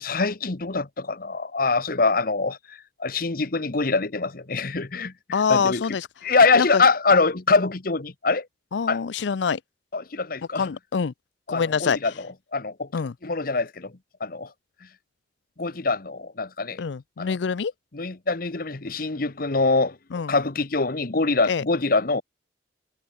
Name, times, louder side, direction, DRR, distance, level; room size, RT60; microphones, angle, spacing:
voice 1, 0.0-5.8 6.2-8.5 8.9-9.0 9.9-10.7 11.5-12.1 12.5-12.9 13.2-13.9 14.2-14.5 15.6-16.8 17.2-17.4 17.9-20.0 20.3-22.2, left 3 dB, 50° left, 1.1 m, -24 dB
voice 2, 5.3-6.1 6.6-6.8 8.7-9.6 10.5-11.1 11.5-12.2 12.9-13.1 16.8-17.7 20.1-20.3 21.5-21.6, left 6 dB, 75° left, 0.5 m, -25 dB
head